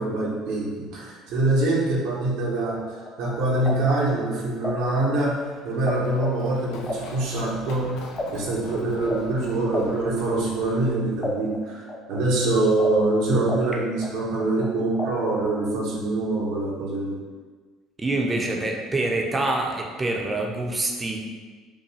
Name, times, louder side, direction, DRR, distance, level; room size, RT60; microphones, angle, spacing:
voice 1, 0.0-8.0 8.3-17.2, right 2 dB, 75° right, -4 dB, 1.0 m, -24 dB
sound 1, 2.9-5.9 6.2-10.9 11.2-13.7 14.0-15.7, left 2 dB, 30° left, 0.7 m, -33 dB
Run, 5.3-10.9, left 4 dB, 70° left, 0.5 m, -43 dB
voice 2, 18.0-21.2, right 2 dB, 25° right, 1 dB, 0.7 m, -26 dB
5.3 x 2.2 x 3.3 m, 1.4 s
supercardioid pair, 85°, 0 cm